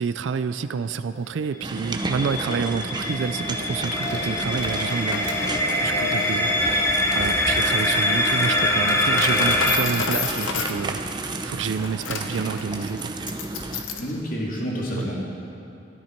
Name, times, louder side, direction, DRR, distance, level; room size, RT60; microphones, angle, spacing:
voice 1, 0.0-5.5 5.8-11.0 11.4-13.1 14.9-15.0, right 5 dB, 70° right, 11 dB, 0.4 m, -29 dB
sound 1, 1.6-9.8, left 1 dB, 15° left, 0.7 m, -24 dB
sound 2, 1.6-13.8, right 2 dB, 25° right, 0.6 m, -32 dB
Coin (dropping), 3.6-14.2, left 5 dB, 90° left, 1.0 m, -33 dB
voice 2, 5.4-5.8 14.0-15.2, equal, 45° left, -4 dB, 2.3 m, -30 dB
13.5 x 12.5 x 4.4 m, 2.8 s
head